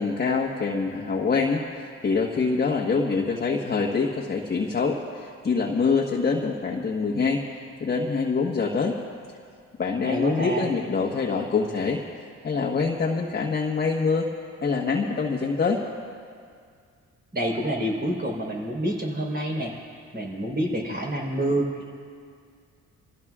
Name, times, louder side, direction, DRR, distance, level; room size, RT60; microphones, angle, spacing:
voice 1, 0.0-7.4 7.8-9.0 9.8-12.0 12.4-14.3 14.6-15.8, left 4 dB, 35° left, -1 dB, 1.3 m, -25 dB
voice 2, 10.0-10.7 17.3-21.9, right 1 dB, 35° right, -1 dB, 4.1 m, -28 dB
28.0 x 15.0 x 2.4 m, 2.2 s
cardioid pair, 90°, 30 cm